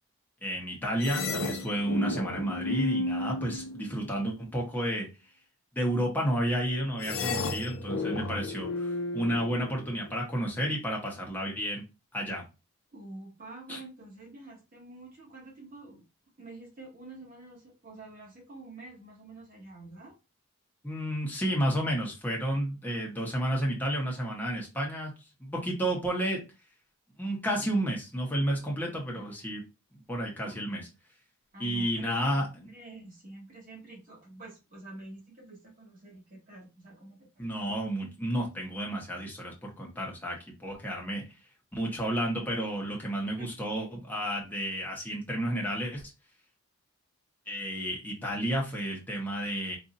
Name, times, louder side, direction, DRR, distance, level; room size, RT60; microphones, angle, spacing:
voice 1, 0.4-5.1 5.7-11.8 12.1-12.4 13.7-13.8 20.8-25.1 25.4-26.4 27.2-29.6 29.9-30.9 31.6-32.7 37.4-41.2 41.7-46.1 47.5-49.8, equal, 10° left, -2 dB, 1.0 m, -31 dB
sound 1, 1.0-4.2 7.0-10.2, left 2 dB, 70° left, 0.7 m, -33 dB
voice 2, 12.9-16.0 16.4-20.1 29.1-29.5 30.5-30.9 31.5-37.5 43.4-43.5, right 2 dB, 40° right, -3 dB, 1.8 m, -48 dB
4.0 x 2.7 x 2.6 m, 0.27 s
head